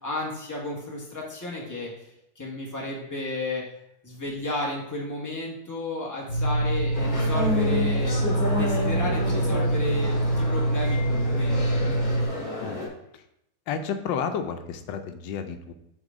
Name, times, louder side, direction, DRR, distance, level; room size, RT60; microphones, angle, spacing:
voice 1, 0.0-3.6 4.0-8.2 8.5-11.6 11.9-12.1, left 2 dB, 10° left, -4 dB, 1.4 m, -33 dB
sound 1, 6.3-12.3, right 1 dB, 65° left, 1.9 m, -25 dB
sound 2, 6.9-12.9, left 2 dB, 45° left, 2.1 m, -30 dB
voice 2, 13.7-15.7, left 6 dB, 90° left, 8 dB, 1.3 m, -31 dB
6.4 x 3.9 x 5.0 m, 0.79 s
omnidirectional pair, 1.9 m